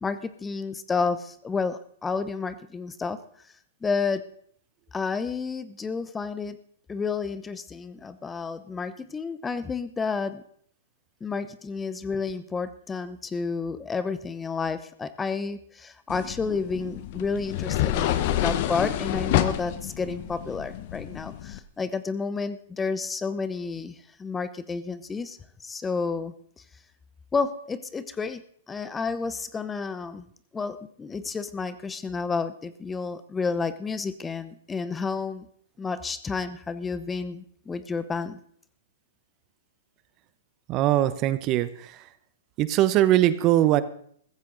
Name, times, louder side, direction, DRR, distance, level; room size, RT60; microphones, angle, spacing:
voice 1, 0.0-3.2 3.8-4.2 4.9-6.6 6.9-10.4 11.2-26.3 27.3-28.4 28.7-30.3 30.5-35.5 35.8-38.4, left 4 dB, 15° left, 13 dB, 0.8 m, -30 dB
sound 1, 16.1-21.6, left 12 dB, 50° left, 1.0 m, -28 dB
voice 2, 40.7-42.1 42.6-43.8, right 13 dB, 35° right, 14 dB, 0.9 m, -21 dB
15.0 x 15.0 x 4.0 m, 0.62 s
hypercardioid pair, 125°, 0 cm